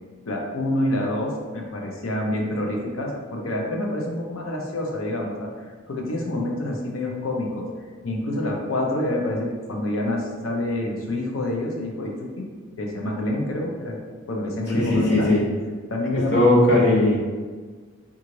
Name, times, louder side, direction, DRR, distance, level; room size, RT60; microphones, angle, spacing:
voice 1, 0.2-5.5 5.9-7.7 8.0-12.5 12.8-14.0 14.3-15.3 15.9-16.5, left 1 dB, 80° left, 0 dB, 0.6 m, -27 dB
voice 2, 14.7-15.4 16.3-17.2, left 2 dB, 55° left, -8 dB, 1.0 m, -18 dB
3.1 x 2.4 x 3.8 m, 1.5 s
head